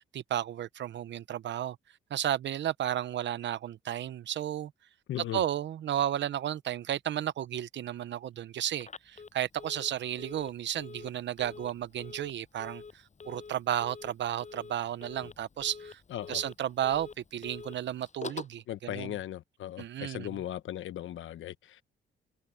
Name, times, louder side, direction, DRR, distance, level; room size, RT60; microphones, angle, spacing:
voice 1, 0.0-1.8 2.1-4.7 5.3-12.8 13.3-16.0 16.3-19.2 19.8-20.4, right 11 dB, 65° right, 0.9 m, -33 dB
voice 2, 5.1-5.4 16.1-16.4 18.7-21.8, left 12 dB, 75° left, 1.3 m, -38 dB
Telephone, 8.7-18.6, left 5 dB, 35° left, 7.5 m, -47 dB
cardioid pair, 100°, 20 cm